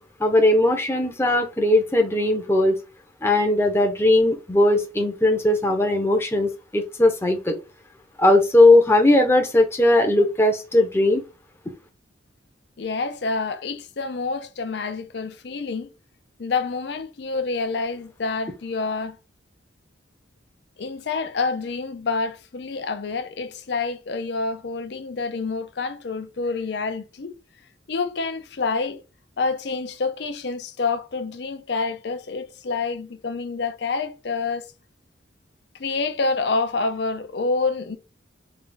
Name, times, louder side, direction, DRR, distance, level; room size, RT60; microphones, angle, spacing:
voice 1, 0.2-2.8 3.2-7.6 8.2-11.2, left 1 dB, 15° left, 0.7 m, -18 dB
voice 2, 12.8-15.9 16.4-19.2 20.8-27.3 27.9-29.0 29.4-34.7 35.8-38.0, left 4 dB, 60° left, 0.5 m, -27 dB
3.4 x 2.3 x 3.9 m
head